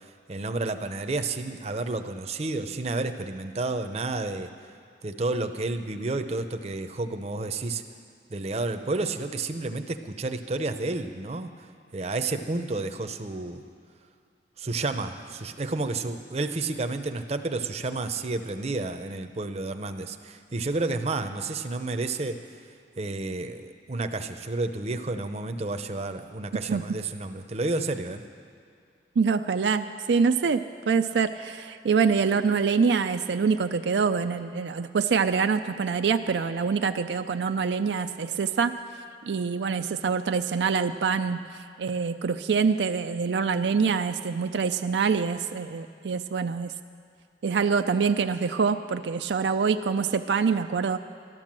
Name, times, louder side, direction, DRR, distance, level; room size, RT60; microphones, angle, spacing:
voice 1, 0.3-4.5 5.0-7.8 8.3-11.5 11.9-13.6 14.6-22.4 23.0-28.2, right 3 dB, 35° right, 7 dB, 0.7 m, -30 dB
voice 2, 29.2-38.7 39.3-41.4 41.8-46.7 47.4-51.0, right 5 dB, 80° right, 8 dB, 0.4 m, -25 dB
12.5 x 12.0 x 7.4 m, 2.3 s
head